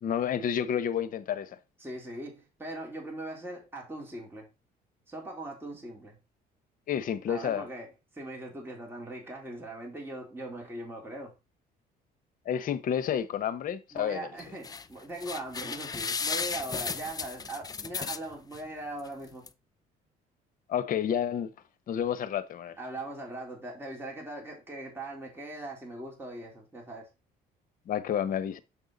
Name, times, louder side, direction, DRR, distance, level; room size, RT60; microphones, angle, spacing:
voice 1, 0.0-1.6 6.9-7.6 12.5-14.3 20.7-21.5 21.9-22.8 27.9-28.6, left 9 dB, 55° left, 0.9 m, -30 dB
voice 2, 1.8-4.5 5.1-6.2 7.3-11.3 13.9-19.5 22.8-27.1, right 2 dB, 15° right, 3.7 m, -40 dB
sound 1, 14.4-14.9 15.2-18.6 19.1-19.2 19.5-19.6, left 5 dB, 20° left, 0.5 m, -34 dB
7.2 x 5.5 x 3.9 m
cardioid pair, 110°, 17 cm